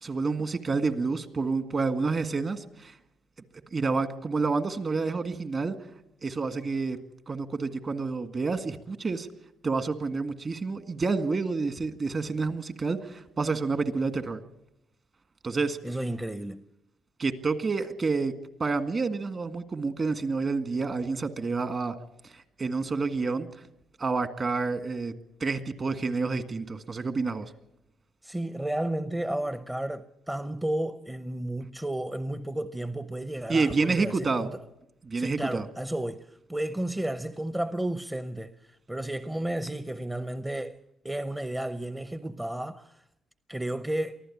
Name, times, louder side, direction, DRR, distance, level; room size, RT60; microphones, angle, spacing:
voice 1, 0.0-3.0 3.7-5.8 6.2-7.0 7.3-9.3 9.6-14.4 15.4-15.8 17.2-18.3 18.6-22.0 22.2-23.6 24.0-25.1 25.4-27.5 33.5-34.5 35.0-35.7, right 4 dB, 40° right, 1.9 m, -29 dB
voice 2, 15.8-16.6 28.2-34.5 35.1-38.5 38.9-40.8 41.0-43.0 43.5-44.2, right 1 dB, 10° right, 0.8 m, -32 dB
24.0 x 15.0 x 8.7 m
cardioid pair, 90°, 0 cm